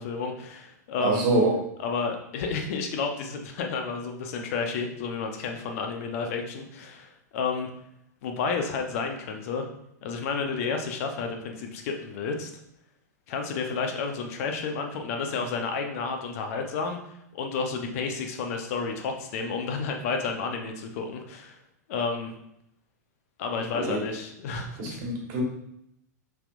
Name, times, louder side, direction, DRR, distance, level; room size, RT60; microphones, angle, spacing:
voice 1, 0.0-1.3 1.8-7.7 8.2-9.7 10.0-12.5 13.3-17.0 17.3-21.6 21.9-22.3 23.4-25.0, left 5 dB, 55° left, 4 dB, 0.8 m, -31 dB
voice 2, 1.0-1.5 23.7-24.0 24.8-25.4, right 2 dB, 45° right, 0 dB, 1.4 m, -25 dB
5.6 x 3.6 x 2.5 m, 0.77 s
hypercardioid pair, 105°, 9 cm